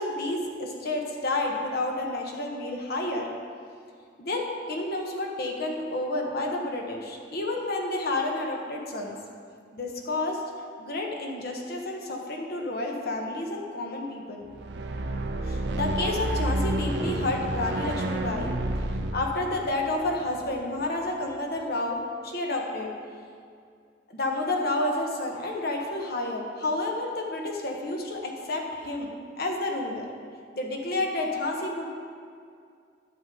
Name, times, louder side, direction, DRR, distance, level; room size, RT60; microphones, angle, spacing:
voice 1, 0.0-3.3 4.2-9.2 9.7-10.4 10.8-14.4 15.4-18.5 19.1-22.0 22.2-22.9 24.1-30.1 30.5-31.8, left 2 dB, 60° left, 1 dB, 1.2 m, -30 dB
sound 1, 14.5-20.8, right 1 dB, 65° right, 0.6 m, -30 dB
11.0 x 7.2 x 3.8 m, 2.2 s
head